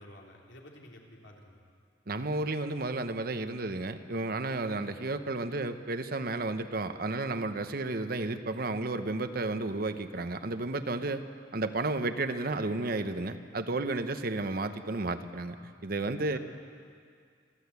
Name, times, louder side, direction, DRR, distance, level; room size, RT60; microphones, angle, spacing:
voice 1, 0.0-1.6 16.3-16.4, left 1 dB, 80° left, -1 dB, 3.3 m, -51 dB
voice 2, 2.1-11.2 11.5-16.4, right 2 dB, 55° right, 9 dB, 1.0 m, -32 dB
27.5 x 13.0 x 8.3 m, 2.2 s
head